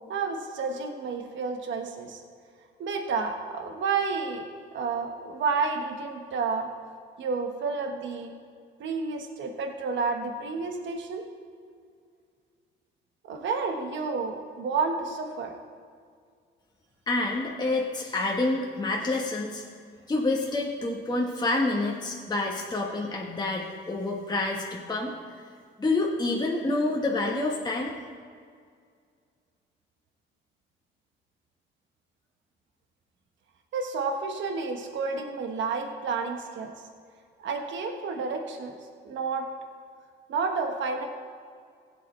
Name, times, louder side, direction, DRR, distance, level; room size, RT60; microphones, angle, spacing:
voice 1, 0.1-2.2 2.8-4.4 4.7-6.7 7.2-8.3 8.8-11.2 13.3-15.5 33.7-36.7 37.4-38.8 39.0-39.5 40.3-41.1, right 4 dB, 70° right, 4 dB, 1.4 m, -30 dB
voice 2, 17.1-19.6 20.1-25.1 25.8-28.0, left 2 dB, 20° left, -2 dB, 1.4 m, -28 dB
16.5 x 8.5 x 3.3 m, 2.1 s
cardioid pair, 90°, 20 cm